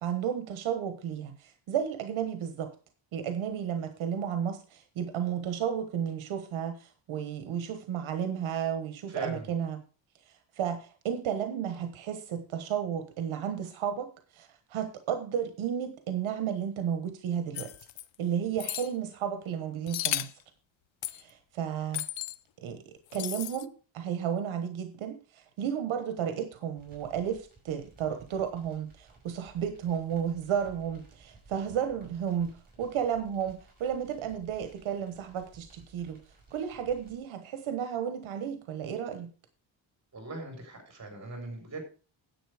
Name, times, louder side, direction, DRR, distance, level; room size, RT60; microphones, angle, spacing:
voice 1, 0.0-2.7 3.1-9.8 10.3-17.7 18.2-20.3 21.1-22.0 22.6-36.2 36.5-39.3, right 8 dB, 80° right, 1.3 m, -33 dB
voice 2, 9.1-9.5 40.1-41.8, right 2 dB, 35° right, 4.1 m, -40 dB
sound 1, 17.6-18.0 18.6-18.9 19.9-20.4 21.0-21.2 21.9-22.4 23.1-23.6, left 14 dB, 75° left, 0.7 m, -34 dB
sound 2, 26.8-37.2, right 3 dB, 20° right, 5.8 m, -57 dB
10.0 x 7.9 x 5.0 m
wide cardioid pair, 175°, 47 cm